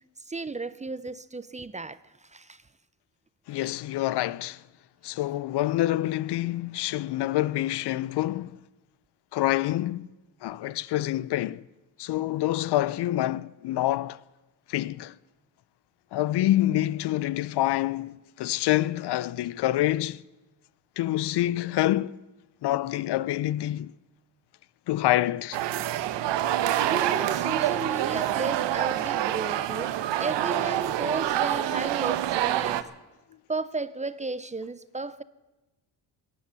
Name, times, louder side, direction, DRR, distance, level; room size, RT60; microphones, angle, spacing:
voice 1, 0.3-2.0 2.3-2.6 26.8-29.9 30.2-32.9 33.5-35.2, right 3 dB, 15° right, 0.5 m, -34 dB
voice 2, 3.5-4.6 5.0-8.6 9.3-10.1 10.4-11.6 12.0-14.2 14.7-15.1 16.1-20.2 21.0-22.2 22.6-23.9 24.9-25.6, left 15 dB, 70° left, 0.5 m, -27 dB
sound 1, 25.5-32.8, right 12 dB, 80° right, 0.9 m, -27 dB
17.5 x 11.0 x 6.8 m
cardioid pair, 105°, 43 cm